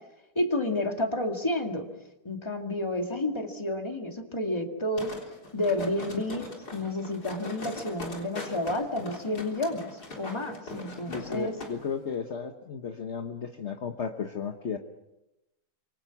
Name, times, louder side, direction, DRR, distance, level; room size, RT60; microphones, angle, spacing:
voice 1, 0.4-1.9 2.2-5.1 5.5-11.5, left 1 dB, 15° left, 3 dB, 2.3 m, -30 dB
sound 1, 5.0-11.7 12.1-12.2, left 2 dB, 85° left, 4.4 m, -41 dB
voice 2, 11.1-14.8, left 6 dB, 50° left, 5 dB, 1.4 m, -34 dB
27.0 x 24.5 x 5.9 m, 0.94 s
omnidirectional pair, 1.7 m